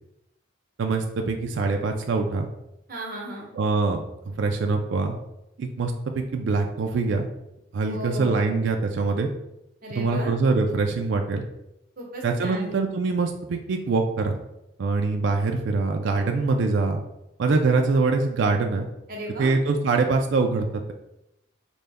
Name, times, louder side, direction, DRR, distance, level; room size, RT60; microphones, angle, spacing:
voice 1, 0.8-2.5 3.5-4.0 4.3-5.2 5.6-7.3 7.7-9.3 9.9-11.4 12.2-14.4 14.8-17.0 17.4-18.9 19.4-20.9, right 3 dB, 60° right, 3 dB, 0.3 m, -24 dB
voice 2, 2.9-3.5 7.9-8.6 9.8-10.4 12.0-12.8 19.1-19.5, right 1 dB, 45° right, -2 dB, 1.0 m, -35 dB
5.1 x 2.2 x 3.4 m, 0.87 s
head